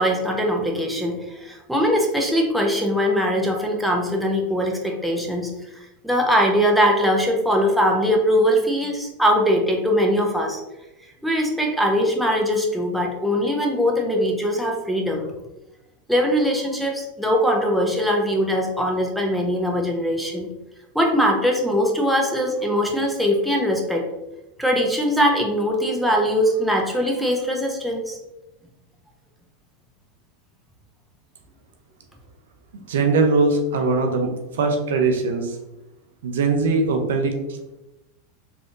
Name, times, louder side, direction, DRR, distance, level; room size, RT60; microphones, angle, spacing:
voice 1, 0.0-10.6 11.2-15.3 16.1-20.5 20.9-24.1 24.6-28.2, equal, ahead, 0 dB, 0.7 m, -21 dB
voice 2, 32.9-35.6 36.2-37.3, right 3 dB, 75° right, 4 dB, 0.5 m, -21 dB
3.4 x 2.6 x 2.4 m, 0.95 s
hypercardioid pair, 95°, 0 cm